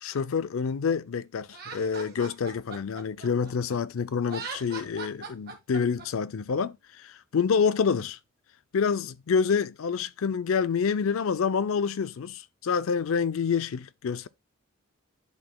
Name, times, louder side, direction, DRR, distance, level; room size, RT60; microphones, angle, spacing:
voice 1, 0.0-8.2 8.7-14.3, left 6 dB, 75° left, 0.4 m, -27 dB
Laughter, 1.5-3.8 4.2-6.1, right 4 dB, 45° right, 1.7 m, -40 dB
10.5 x 4.1 x 2.2 m
head